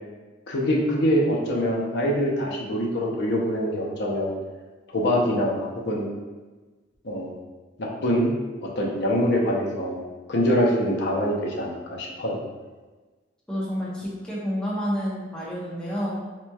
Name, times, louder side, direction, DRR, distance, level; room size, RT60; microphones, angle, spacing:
voice 1, 0.5-4.3 4.9-6.1 7.0-7.3 7.8-8.3 8.8-10.0 10.3-12.4, equal, 60° left, -2 dB, 0.7 m, -24 dB
voice 2, 13.5-16.2, equal, 5° left, -8 dB, 0.9 m, -29 dB
4.2 x 3.0 x 2.3 m, 1.3 s
head